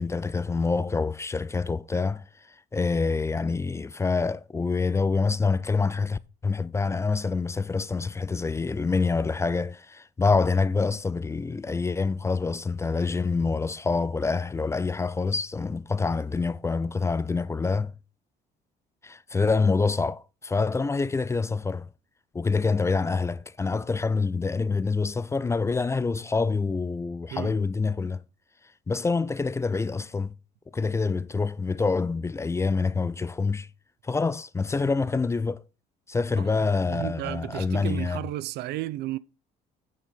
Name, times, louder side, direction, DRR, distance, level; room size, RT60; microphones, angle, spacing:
voice 1, 0.0-2.2 2.7-17.9 19.0-21.9 22.3-28.2 28.9-30.3 30.7-33.7 34.0-35.6 36.1-38.2, left 4 dB, 15° left, 0.3 m, -26 dB
voice 2, 36.4-39.2, right 15 dB, 75° right, 0.5 m, -33 dB
8.6 x 4.4 x 5.1 m
cardioid pair, 110°, 17 cm